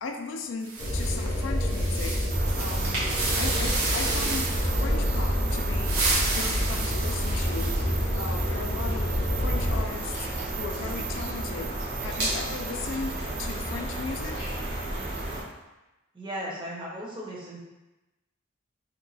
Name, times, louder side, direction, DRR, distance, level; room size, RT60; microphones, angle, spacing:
voice 1, 0.0-2.2 2.6-3.1 3.4-4.5 4.8-6.0 6.3-7.8 8.2-10.3 10.6-11.7 12.0-14.5, left 4 dB, 65° left, 4 dB, 0.3 m, -37 dB
sound 1, 0.6-4.8 5.6-8.0, right 2 dB, 85° right, 0.7 m, -31 dB
sound 2, 0.8-9.8, equal, 25° left, 0.6 m, -28 dB
sound 3, 2.3-15.4, right 2 dB, 55° right, 1.0 m, -33 dB
voice 2, 16.1-17.6, equal, 25° right, -5 dB, 0.7 m, -36 dB
2.9 x 2.3 x 3.9 m, 1.0 s
head